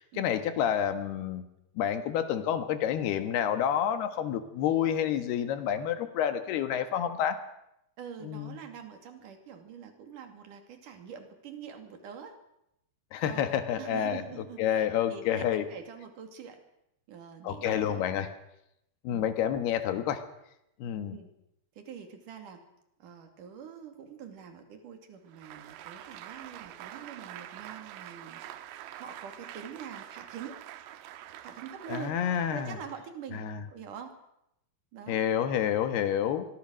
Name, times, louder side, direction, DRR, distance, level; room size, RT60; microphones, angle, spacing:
voice 1, 0.0-1.5 1.8-7.4 8.2-8.6 13.1-14.2 14.6-15.7 17.4-18.3 19.0-20.2 20.8-21.2 31.9-32.8 33.3-33.6 35.1-36.5, left 9 dB, 70° left, 10 dB, 3.3 m, -29 dB
voice 2, 8.0-12.4 13.2-16.6 17.1-18.1 19.1-19.3 21.1-21.3 21.8-22.7 23.0-28.5 28.7-30.6 31.4-32.2 32.5-34.2 34.9-35.2, right 7 dB, 50° right, 6 dB, 3.7 m, -45 dB
Applause, 25.3-33.0, right 12 dB, 85° right, 3.2 m, -46 dB
24.0 x 22.0 x 6.4 m, 0.81 s
omnidirectional pair, 5.0 m